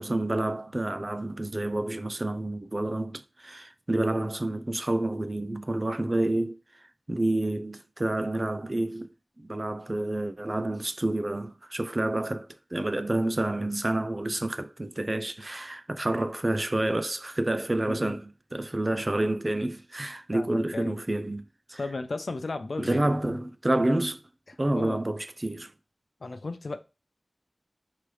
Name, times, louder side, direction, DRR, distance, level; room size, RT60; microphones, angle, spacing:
voice 1, 0.0-6.6 7.1-9.1 9.4-21.4 21.7-21.8 22.8-24.2 24.6-25.7, right 1 dB, 35° right, 0.4 m, -29 dB
voice 2, 17.9-18.2 20.3-21.0 21.8-23.2 24.5-25.0 26.2-26.8, left 3 dB, 80° left, 0.4 m, -35 dB
3.7 x 3.1 x 3.1 m
wide cardioid pair, 65°, 0 cm